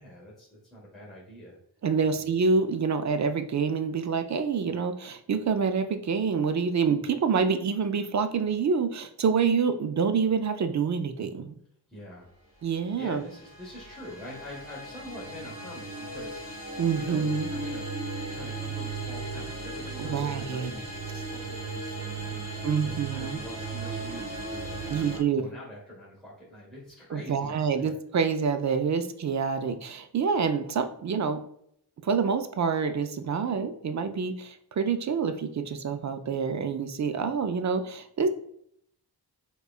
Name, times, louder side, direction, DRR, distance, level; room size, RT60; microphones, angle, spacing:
voice 1, 0.0-1.6 2.0-2.2 11.9-12.3 13.0-17.9 18.2-20.8 21.2-22.5 22.7-27.9, equal, ahead, -7 dB, 1.3 m, -45 dB
voice 2, 1.8-11.5 12.6-13.2 16.8-17.5 20.1-20.7 22.6-23.4 24.9-25.4 27.1-31.4 32.0-38.3, right 5 dB, 45° right, 8 dB, 0.4 m, -27 dB
sound 1, 12.9-25.2, right 3 dB, 20° right, 1.4 m, -36 dB
4.8 x 2.3 x 2.3 m, 0.69 s
cardioid pair, 60°, 41 cm